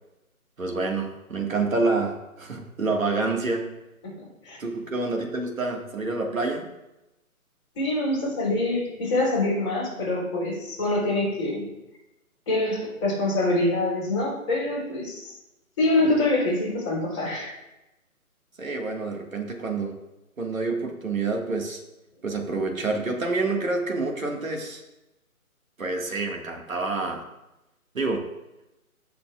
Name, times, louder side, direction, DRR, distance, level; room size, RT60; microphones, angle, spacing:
voice 1, 0.6-3.7 4.6-6.7 16.0-16.1 18.6-19.9 20.4-21.8 22.2-24.8 25.8-27.2 27.9-28.2, right 3 dB, 65° right, 1 dB, 1.9 m, -27 dB
voice 2, 7.7-11.7 12.5-15.3 15.8-17.5, left 2 dB, 20° left, -7 dB, 3.2 m, -25 dB
16.5 x 5.8 x 2.4 m, 0.95 s
hypercardioid pair, 170°, 43 cm